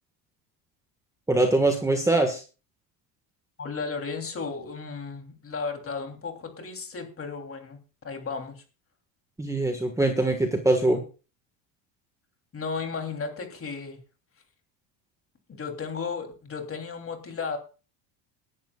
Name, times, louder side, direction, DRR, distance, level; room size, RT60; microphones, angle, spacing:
voice 1, 1.3-2.4 9.4-11.0, right 2 dB, 5° right, 4 dB, 1.5 m, -23 dB
voice 2, 3.6-7.8 8.0-8.6 12.5-14.0 15.5-17.6, left 5 dB, 25° left, 5 dB, 3.2 m, -34 dB
19.5 x 11.0 x 2.4 m, 0.33 s
supercardioid pair, 115°, 48 cm